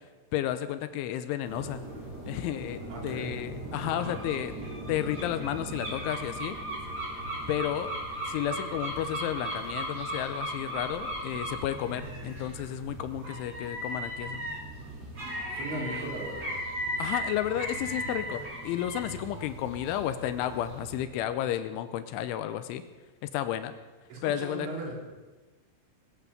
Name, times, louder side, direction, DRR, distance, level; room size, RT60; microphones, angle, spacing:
voice 1, 0.3-1.8 2.3-4.5 4.9-6.6 7.5-7.9 8.3-14.4 15.7-16.1 17.0-22.8 23.2-23.8 24.2-24.7, left 11 dB, 80° left, 11 dB, 3.1 m, -32 dB
sound 1, 1.4-21.0, right 1 dB, 20° right, 3.7 m, -37 dB
voice 2, 2.9-3.3 15.5-16.4 16.9-17.0 24.1-24.9, right 3 dB, 65° right, -2 dB, 5.9 m, -38 dB
22.5 x 8.6 x 7.2 m, 1.2 s
omnidirectional pair, 5.7 m